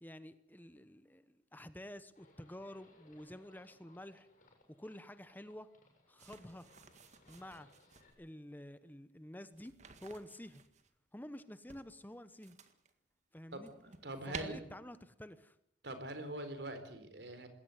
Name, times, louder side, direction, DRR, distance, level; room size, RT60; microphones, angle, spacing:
voice 1, 0.0-4.3 4.7-5.7 6.1-6.7 7.3-7.7 8.2-10.6 11.1-12.6 13.3-13.7 14.3-15.5, left 1 dB, 10° left, 13 dB, 1.0 m, -50 dB
Livestock farm animals working animals, 2.2-8.1, left 2 dB, 50° left, 7.4 m, -66 dB
sound 1, 6.2-8.2 9.5-10.9 11.7-12.9 13.4-14.4, right 4 dB, 40° right, 1.9 m, -53 dB
voice 2, 14.0-14.6 15.8-17.5, right 1 dB, 75° right, 10 dB, 4.2 m, -43 dB
20.5 x 18.0 x 9.3 m, 0.72 s
head